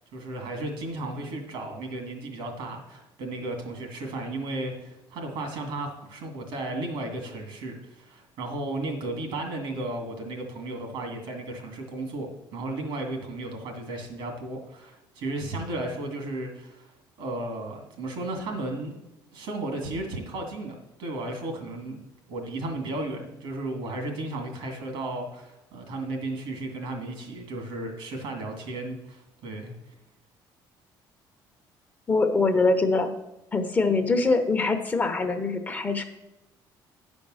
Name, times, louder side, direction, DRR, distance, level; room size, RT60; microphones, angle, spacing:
voice 1, 0.0-16.9 17.2-18.9 19.3-22.0 22.3-29.7, right 2 dB, 80° right, 3 dB, 2.3 m, -34 dB
voice 2, 32.1-33.1 33.5-36.0, left 3 dB, 20° left, 6 dB, 0.9 m, -23 dB
10.0 x 5.3 x 6.3 m, 0.94 s
cardioid pair, 125°, 8 cm